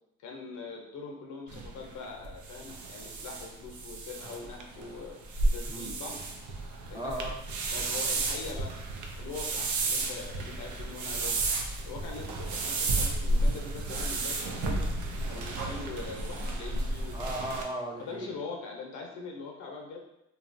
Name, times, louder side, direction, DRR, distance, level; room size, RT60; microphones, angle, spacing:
voice 1, 0.2-5.2 5.5-6.2 6.9-7.1 7.7-8.8 9.2-11.5 11.8-14.8 15.3-17.3 18.0-20.0, left 4 dB, 75° left, 0 dB, 0.7 m, -42 dB
sound 1, 1.5-17.6, right 2 dB, 70° right, 0.5 m, -32 dB
voice 2, 5.7-6.2 6.9-7.3 17.1-18.3, right 1 dB, 15° right, -2 dB, 0.5 m, -37 dB
3.0 x 2.3 x 2.5 m, 0.84 s
cardioid pair, 90°, 30 cm